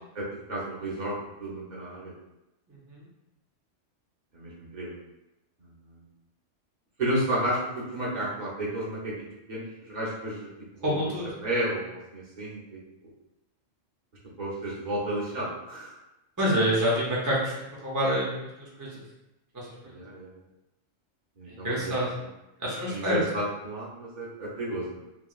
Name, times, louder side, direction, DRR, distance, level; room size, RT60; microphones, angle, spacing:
voice 1, 0.1-2.1 4.3-4.9 5.6-6.0 7.0-9.1 9.5-10.5 10.8-11.0 11.4-13.1 14.4-15.9 19.8-20.4 21.4-21.9 22.9-25.0, right 1 dB, 40° right, -7 dB, 0.8 m, -32 dB
voice 2, 10.8-11.2 16.4-17.5 17.8-18.3 18.6-18.9 19.5-19.9 21.5-22.1 22.6-23.2, equal, 25° right, -5 dB, 0.4 m, -27 dB
3.0 x 2.8 x 2.3 m, 0.92 s
omnidirectional pair, 1.3 m